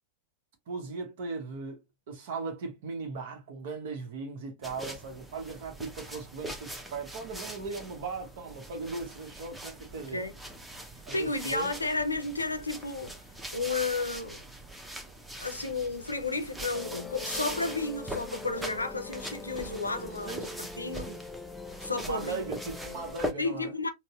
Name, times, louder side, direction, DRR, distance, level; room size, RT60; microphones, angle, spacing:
voice 1, 0.7-1.8 2.1-10.2 11.1-11.7 20.2-21.2 22.0-23.7, right 4 dB, 60° right, 0.8 m, -38 dB
sound 1, 4.6-23.3, right 1 dB, 5° right, 0.7 m, -42 dB
voice 2, 10.0-10.4 11.1-13.1 13.5-14.4 15.4-21.1 21.8-22.5 23.4-23.9, left 3 dB, 90° left, 0.5 m, -32 dB
Musical instrument, 16.7-23.1, left 4 dB, 10° left, 0.3 m, -43 dB
4.0 x 2.1 x 2.3 m
figure-of-eight pair, 90°, 0 cm